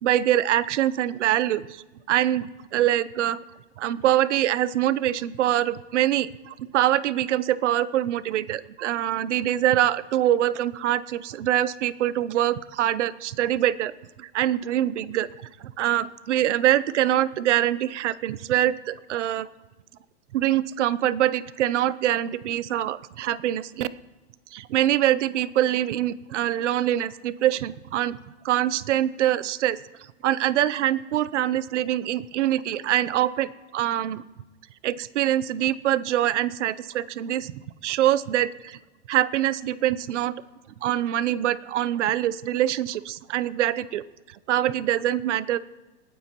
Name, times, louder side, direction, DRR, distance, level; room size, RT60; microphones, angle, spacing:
voice 1, 0.0-3.4 3.8-13.9 14.2-15.3 15.6-19.5 20.3-23.9 24.5-28.2 28.4-29.8 30.2-34.2 34.8-38.8 39.1-40.3 40.8-44.0 44.5-45.6, right 12 dB, 75° right, 17 dB, 0.7 m, -24 dB
28.0 x 9.3 x 3.0 m, 1.2 s
supercardioid pair, 175°, 36 cm